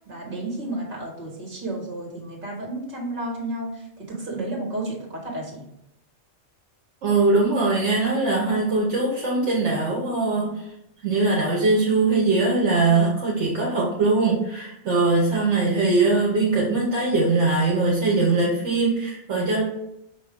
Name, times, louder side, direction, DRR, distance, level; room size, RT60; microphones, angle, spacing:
voice 1, 0.0-5.6, right 1 dB, 45° right, -2 dB, 1.6 m, -32 dB
voice 2, 7.0-10.6 11.0-19.6, right 3 dB, 65° right, -4 dB, 1.2 m, -21 dB
5.7 x 2.7 x 3.5 m, 0.81 s
omnidirectional pair, 1.3 m